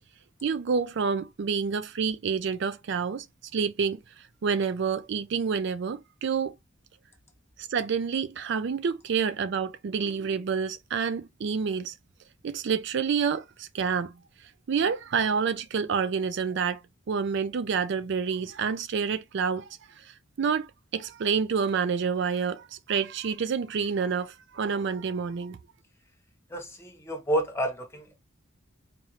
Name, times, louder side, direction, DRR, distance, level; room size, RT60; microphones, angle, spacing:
voice 1, 0.4-3.3 3.5-4.0 4.4-6.5 7.6-11.9 12.4-14.1 14.7-16.8 17.1-19.7 20.0-20.1 20.4-25.6, right 6 dB, 60° right, 0.4 m, -28 dB
voice 2, 26.5-28.1, right 1 dB, 15° left, 1.0 m, -30 dB
4.2 x 2.6 x 2.9 m
head